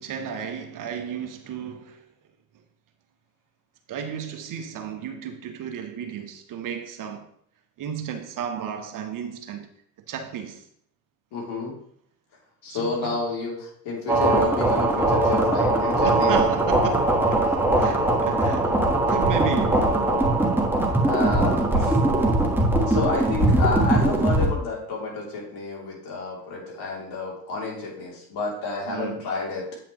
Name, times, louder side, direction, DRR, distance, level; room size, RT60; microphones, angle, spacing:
voice 1, 0.0-2.1 3.9-7.3 7.8-9.7 10.1-10.6 12.7-13.2 16.0-17.4 17.8-18.7 19.1-20.0 21.7-22.2 28.9-29.2, right 8 dB, 40° right, 1.1 m, -33 dB
voice 2, 11.3-11.8 12.6-16.3 21.0-22.0 22.9-29.7, left 3 dB, 55° left, 3.0 m, -30 dB
sound 1, 14.1-24.5, right 2 dB, 5° right, 1.4 m, -21 dB
8.8 x 5.9 x 3.0 m
hypercardioid pair, 75°, 47 cm